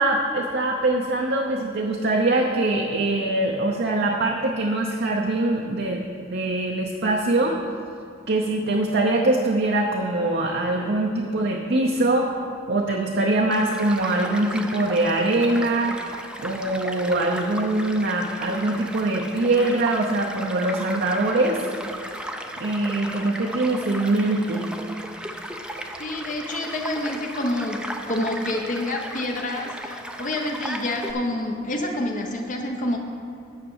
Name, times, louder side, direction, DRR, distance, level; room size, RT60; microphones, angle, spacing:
voice 1, 0.0-7.6 8.3-12.3 12.7-16.0 16.4-21.7 22.6-24.7, right 2 dB, 55° right, 1 dB, 0.7 m, -23 dB
Child speech kid speaking / Stream / Car passing by, 13.5-31.1, right 1 dB, 5° right, 0.5 m, -36 dB
voice 2, 26.0-27.8 28.1-33.0, left 1 dB, 45° left, 1 dB, 0.8 m, -28 dB
9.8 x 5.8 x 7.0 m, 2.4 s
head